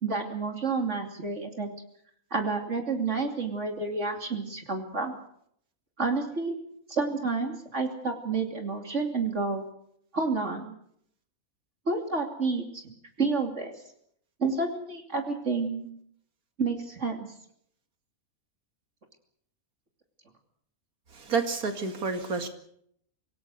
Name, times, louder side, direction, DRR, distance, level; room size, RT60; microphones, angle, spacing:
voice 1, 0.0-1.7 2.3-5.2 6.0-6.6 6.9-9.6 10.1-10.7 11.9-13.7 14.4-15.9 16.6-17.3, right 4 dB, 55° right, 4 dB, 3.1 m, -30 dB
voice 2, 21.2-22.5, right 4 dB, 80° right, 7 dB, 2.6 m, -29 dB
25.5 x 18.5 x 6.6 m, 0.69 s
omnidirectional pair, 1.5 m